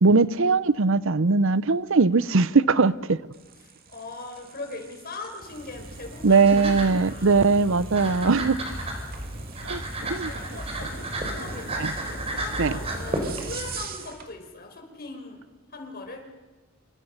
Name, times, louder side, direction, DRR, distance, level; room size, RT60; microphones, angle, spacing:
voice 1, 0.0-3.2 6.2-8.6 9.6-9.8 10.1-10.3 11.8-11.9 12.6-12.7, right 4 dB, 65° right, 0.7 m, -20 dB
sound 1, 3.3-14.3, right 5 dB, 45° right, 2.6 m, -43 dB
voice 2, 3.6-6.5 7.0-7.5 8.0-8.1 9.0-9.1 9.6-9.8 10.1-16.3, left 3 dB, 45° left, 5.3 m, -41 dB
sound 2, 5.4-13.9, right 1 dB, 30° right, 4.7 m, -33 dB
27.5 x 25.5 x 6.7 m
head